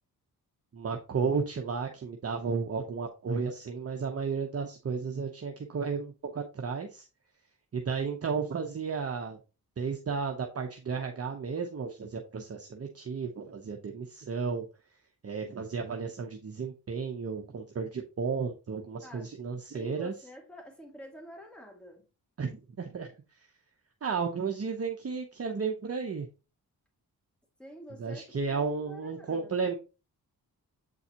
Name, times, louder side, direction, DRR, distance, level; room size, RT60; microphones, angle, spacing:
voice 1, 0.7-7.1 7.7-9.4 9.8-14.7 15.2-20.1 22.4-23.1 23.3-23.5 24.0-26.3 28.0-29.7, right 5 dB, 40° right, 0.9 m, -33 dB
voice 2, 19.7-22.0 27.6-29.5, equal, 5° left, 2.3 m, -48 dB
8.2 x 3.9 x 2.9 m
cardioid pair, 75°, 37 cm